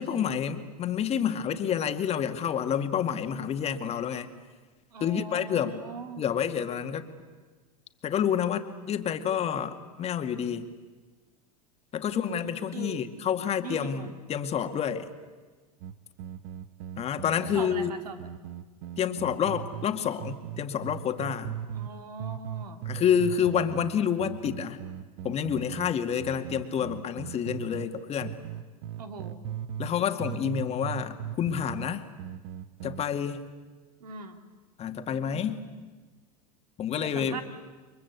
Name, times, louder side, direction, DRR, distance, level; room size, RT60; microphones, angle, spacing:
voice 1, 0.0-4.3 5.0-5.8 6.2-7.1 8.0-10.7 11.9-15.1 17.0-17.9 19.0-21.5 22.9-24.8 25.2-28.3 29.8-32.0 32.8-33.4 34.8-35.6 36.8-37.4, left 8 dB, 30° left, 7 dB, 2.1 m, -28 dB
voice 2, 4.9-6.5 12.1-13.0 13.6-14.2 17.5-18.3 21.7-22.8 28.9-29.4 34.0-34.4 37.0-37.4, right 4 dB, 90° right, 6 dB, 3.0 m, -41 dB
sound 1, 15.8-19.9 20.2-21.9 22.2-27.9 28.2-29.9 30.2-33.1, right 10 dB, 55° right, 1.2 m, -38 dB
30.0 x 23.5 x 8.3 m, 1.3 s
hypercardioid pair, 110°, 20 cm